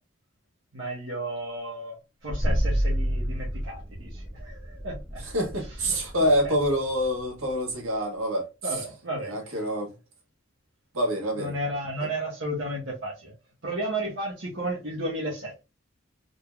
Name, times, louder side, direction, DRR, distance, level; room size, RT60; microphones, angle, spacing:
voice 1, 0.7-1.9 2.2-5.2 5.9-6.3 8.6-9.6 11.3-13.3 13.6-15.6, right 1 dB, 60° right, 1.0 m, -33 dB
sound 1, 2.3-7.8, equal, 5° right, 0.8 m, -30 dB
voice 2, 5.2-8.8 9.2-9.9 10.9-11.5, equal, 90° right, 1.5 m, -26 dB
3.8 x 3.6 x 2.2 m
head